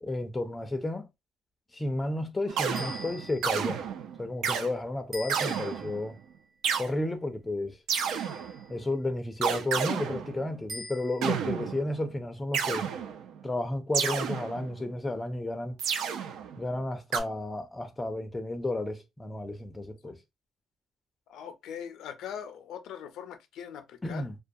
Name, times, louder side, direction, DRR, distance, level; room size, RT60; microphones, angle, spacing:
voice 1, 0.0-1.1 1.7-3.8 4.2-6.2 6.8-7.8 8.7-12.9 13.4-15.8 16.6-20.2 24.0-24.3, left 2 dB, 15° left, 0.4 m, -32 dB
sound 1, 2.5-4.7 5.3-6.1 6.6-6.9 7.9-8.7 9.4-10.6 11.2-12.0 12.5-13.4 13.9-14.9 15.8-16.6 17.1-17.2, right 7 dB, 85° right, 0.4 m, -31 dB
sound 2, 2.7-3.6 5.1-6.0 8.0-8.7 10.7-11.4, left 1 dB, 40° right, 0.8 m, -43 dB
voice 2, 21.3-24.3, left 8 dB, 80° left, 0.4 m, -41 dB
2.3 x 2.2 x 2.6 m
cardioid pair, 145°, 0 cm